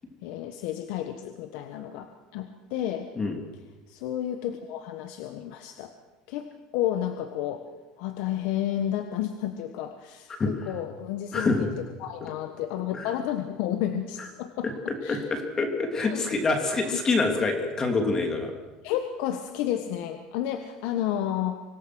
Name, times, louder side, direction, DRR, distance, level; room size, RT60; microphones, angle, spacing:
voice 1, 0.2-3.1 3.9-5.9 6.3-7.7 8.0-15.2 16.1-16.2 16.8-17.0 18.8-21.6, left 11 dB, 75° left, 7 dB, 1.4 m, -31 dB
voice 2, 15.1-18.5, left 3 dB, 25° left, 4 dB, 3.2 m, -26 dB
25.5 x 18.5 x 6.4 m, 1.1 s
cardioid pair, 135°, 2 cm